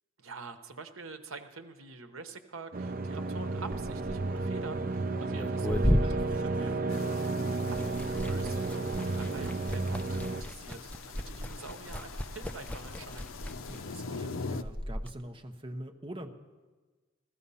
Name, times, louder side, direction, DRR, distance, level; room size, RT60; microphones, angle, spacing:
voice 1, 0.2-6.9 7.8-13.3, right 4 dB, 80° right, 8 dB, 1.1 m, -46 dB
sound 1, 2.7-10.4, right 3 dB, 45° right, 0.6 m, -32 dB
Liquid, 3.6-7.3 7.5-15.1, equal, 5° left, 0.5 m, -35 dB
voice 2, 6.8-7.5 13.7-16.3, right 1 dB, 25° right, 5 dB, 1.0 m, -44 dB
sound 2, 6.9-14.6, left 4 dB, 75° left, 0.6 m, -43 dB
15.5 x 13.5 x 5.6 m, 1.3 s
head